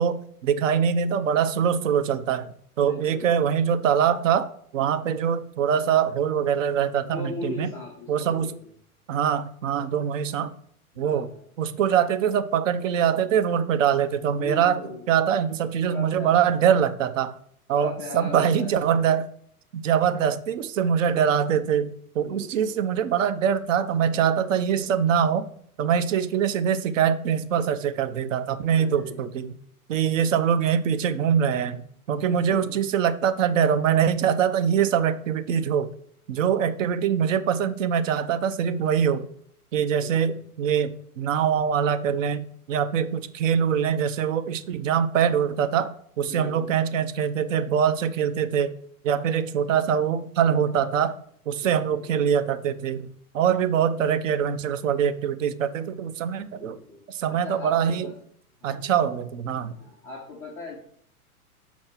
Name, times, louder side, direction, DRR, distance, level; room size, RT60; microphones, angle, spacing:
voice 1, 0.0-4.5 4.7-7.7 8.1-8.6 9.1-10.5 11.0-11.3 11.6-14.8 15.1-17.3 17.7-19.3 19.7-25.5 25.8-29.5 29.9-31.8 32.1-35.9 36.3-39.3 39.7-48.7 49.0-51.1 51.5-56.8 57.1-58.1 58.6-59.7, right 8 dB, 55° right, 12 dB, 0.7 m, -23 dB
voice 2, 2.8-3.4 7.0-8.7 10.9-11.4 14.4-15.0 15.8-16.5 17.7-19.0 22.2-22.8 28.7-29.3 32.3-32.8 40.0-40.4 46.3-46.8 51.6-52.1 56.5-57.0 57.3-58.1 58.6-59.0 59.8-60.8, left 3 dB, 5° left, -5 dB, 0.3 m, -39 dB
5.8 x 4.2 x 5.8 m, 0.64 s
hypercardioid pair, 115°, 45 cm